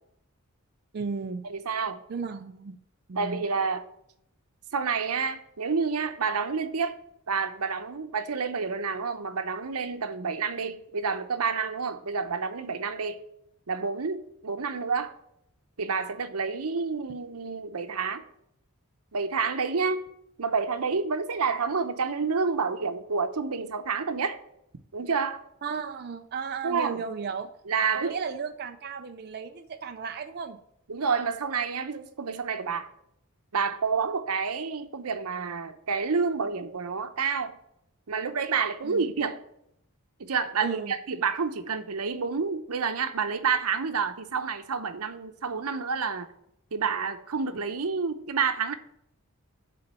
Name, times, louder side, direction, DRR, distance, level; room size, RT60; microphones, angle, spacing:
voice 1, 0.9-1.4 2.1-2.8 3.1-3.4 25.6-27.5 28.0-30.6 38.8-39.0 40.6-40.9, right 5 dB, 45° right, 0.4 m, -34 dB
voice 2, 1.4-2.0 3.1-3.8 4.7-7.0 7.3-13.2 13.7-15.1 15.8-18.2 19.1-20.0 20.4-24.4 24.9-25.4 26.6-27.0 27.7-28.1 30.9-32.9 33.5-37.6 38.1-39.4 40.2-46.3 46.7-48.7, right 5 dB, 85° right, 0.8 m, -29 dB
8.5 x 3.9 x 6.7 m
head